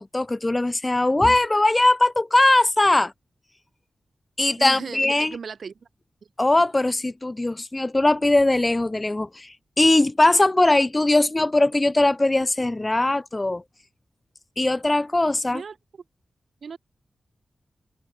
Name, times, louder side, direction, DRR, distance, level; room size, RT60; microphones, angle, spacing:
voice 1, 0.0-3.1 4.4-5.4 6.4-13.6 14.6-15.6, left 2 dB, 20° left, 0.6 m, -20 dB
voice 2, 4.6-5.7 15.5-15.8 16.6-16.8, right 6 dB, 65° right, 2.1 m, -35 dB
wide cardioid pair, 160°, 0 cm